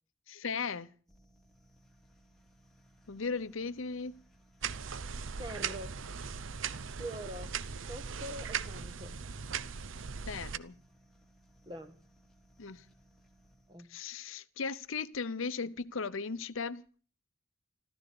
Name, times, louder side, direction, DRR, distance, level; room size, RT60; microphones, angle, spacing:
voice 1, 0.3-0.9 3.1-4.2 10.3-10.8 12.6-12.9 13.9-16.8, left 5 dB, 70° left, 0.8 m, -37 dB
sound 1, 1.1-14.1, right 1 dB, ahead, 2.4 m, -64 dB
sound 2, 4.6-10.6, right 6 dB, 65° right, 0.7 m, -39 dB
voice 2, 5.4-6.0 7.0-7.5 7.9-9.2 11.6-12.0 13.7-13.9, right 1 dB, 20° right, 1.5 m, -43 dB
14.5 x 14.0 x 6.9 m
head